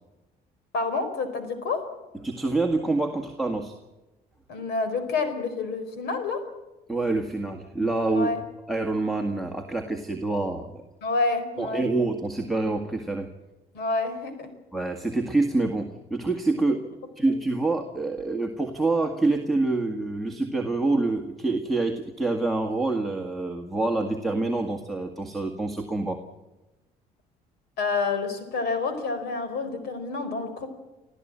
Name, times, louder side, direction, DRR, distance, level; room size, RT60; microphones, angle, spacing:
voice 1, 0.7-1.8 4.5-6.4 8.1-8.4 11.0-11.9 13.7-14.5 17.3-17.4 27.8-30.7, left 3 dB, 75° left, 9 dB, 4.6 m, -28 dB
voice 2, 2.2-3.7 6.9-8.3 8.7-10.8 11.6-13.3 14.7-16.8 17.2-26.2, right 2 dB, ahead, 6 dB, 1.9 m, -26 dB
26.0 x 14.5 x 8.9 m, 1.1 s
cardioid pair, 110°, 17 cm